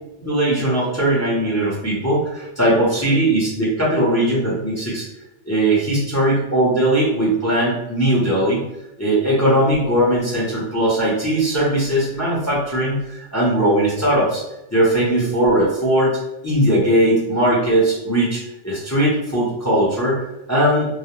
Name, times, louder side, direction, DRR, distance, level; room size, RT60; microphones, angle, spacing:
voice 1, 0.2-5.1 5.5-8.7 9.0-14.4 14.7-16.1 16.4-20.9, right 1 dB, 15° left, -7 dB, 0.5 m, -19 dB
2.4 x 2.2 x 2.9 m, 0.92 s
omnidirectional pair, 1.3 m